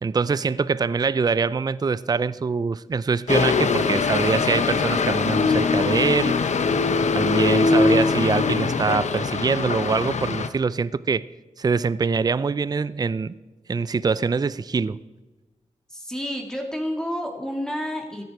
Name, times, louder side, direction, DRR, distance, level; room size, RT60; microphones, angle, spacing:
voice 1, 0.0-6.3 7.1-11.3 11.6-13.3 13.7-15.0, right 5 dB, 30° right, 18 dB, 0.4 m, -24 dB
sound 1, 3.3-10.5, left 4 dB, 65° left, 0.9 m, -22 dB
voice 2, 15.9-18.2, equal, 5° left, 2 dB, 2.2 m, -30 dB
16.0 x 10.5 x 4.8 m, 1.2 s
cardioid pair, 50°, 13 cm